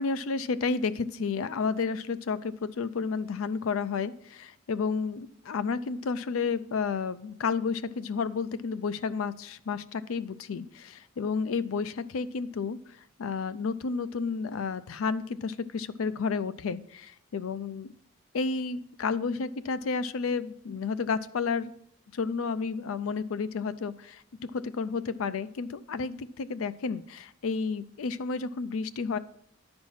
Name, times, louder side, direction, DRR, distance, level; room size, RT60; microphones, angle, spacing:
voice 1, 0.0-12.8 13.2-17.9 18.3-21.7 22.1-24.2 24.5-29.2, left 5 dB, 90° left, 15 dB, 0.4 m, -31 dB
10.5 x 4.4 x 5.6 m, 0.72 s
head